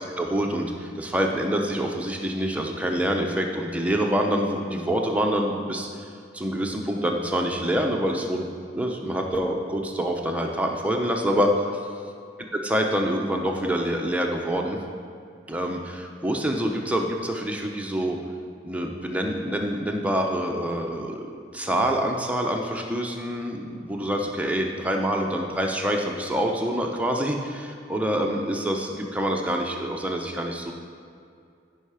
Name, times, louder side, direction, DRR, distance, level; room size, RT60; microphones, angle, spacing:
voice 1, 0.2-6.1 6.3-8.5 8.7-11.5 12.5-14.8 15.5-18.2 18.6-30.7, equal, 5° right, 1 dB, 0.7 m, -26 dB
15.5 x 5.5 x 4.9 m, 2.4 s
head